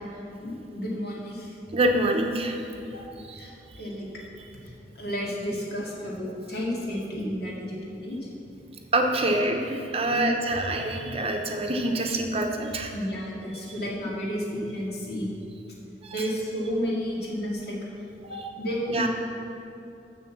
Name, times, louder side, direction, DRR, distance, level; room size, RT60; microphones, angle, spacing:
voice 1, 0.1-1.6 3.3-4.1 5.0-8.2 9.2-9.4 10.1-10.5 12.9-15.4 16.1-17.8 18.3-19.1, equal, 65° left, -4 dB, 2.1 m, -32 dB
voice 2, 1.7-2.7 3.3-3.4 8.9-12.9 16.0-16.3 18.9-19.1, right 1 dB, 35° right, 3 dB, 0.7 m, -26 dB
7.5 x 6.5 x 7.3 m, 2.8 s
head